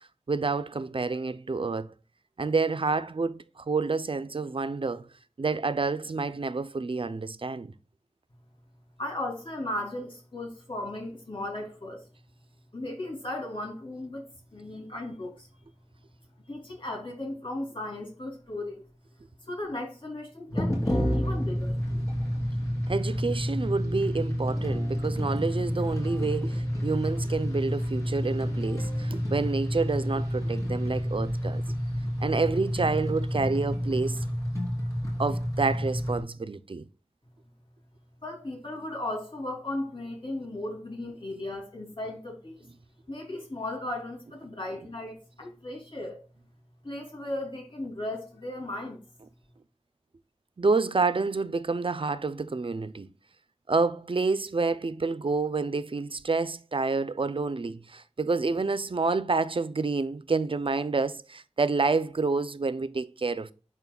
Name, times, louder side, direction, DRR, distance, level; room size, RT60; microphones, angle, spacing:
voice 1, 0.3-1.9 2.4-5.0 5.4-7.7 22.9-31.6 32.2-34.3 35.2-36.8 50.6-53.1 53.7-63.5, right 4 dB, 50° right, 0.5 m, -28 dB
voice 2, 9.0-12.1 12.7-14.2 14.5-15.5 16.5-18.9 19.4-21.8 38.2-42.7 43.1-46.2 46.8-49.0, left 1 dB, 45° left, 2.9 m, -36 dB
sound 1, 20.5-36.2, equal, 25° left, 3.1 m, -29 dB
11.0 x 4.0 x 2.3 m
wide cardioid pair, 50°, 12 cm